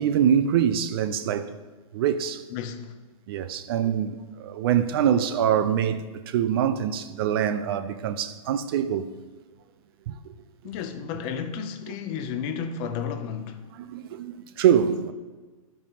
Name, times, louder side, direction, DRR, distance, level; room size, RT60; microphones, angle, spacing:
voice 1, 0.0-1.5 1.9-2.4 3.3-9.1 10.1-10.3 13.7-15.1, right 9 dB, 45° right, 0.4 m, -24 dB
voice 2, 2.5-2.9 10.6-13.6, left 7 dB, 25° left, 0.4 m, -32 dB
10.5 x 5.2 x 2.9 m
hypercardioid pair, 140°, 18 cm